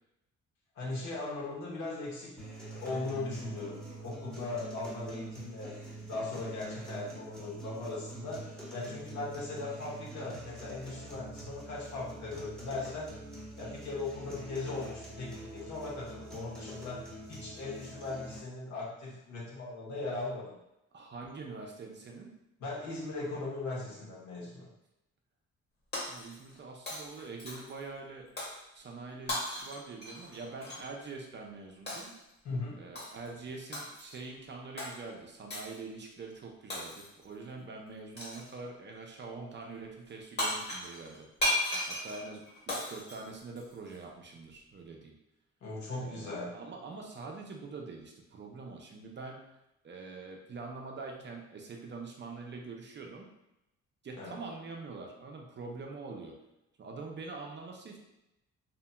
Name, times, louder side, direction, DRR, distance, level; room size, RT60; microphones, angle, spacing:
voice 1, 0.7-2.4 2.7-5.7 6.1-13.1 13.6-20.5 22.6-24.7 32.4-32.8 45.6-46.6 54.2-54.4, left 2 dB, 70° left, -5 dB, 1.1 m, -39 dB
sound 1, 2.4-18.4, right 1 dB, ahead, 0.9 m, -45 dB
voice 2, 20.9-22.4 26.1-28.4 28.7-32.2 32.8-41.3 41.9-45.1 46.0-49.5 49.8-53.3 54.0-56.4 56.8-58.0, right 3 dB, 35° right, 1 dB, 0.5 m, -44 dB
Shatter, 25.9-26.6 26.9-27.8 28.4-28.6 29.3-30.9 31.9-32.2 32.9-33.3 33.7-34.2 34.8-34.9 35.5-35.8 36.7-37.2 38.2-38.5 40.1-40.2 40.4-44.0, left 1 dB, 35° left, 1.2 m, -36 dB
2.8 x 2.6 x 2.2 m, 0.89 s
cardioid pair, 90°, 30 cm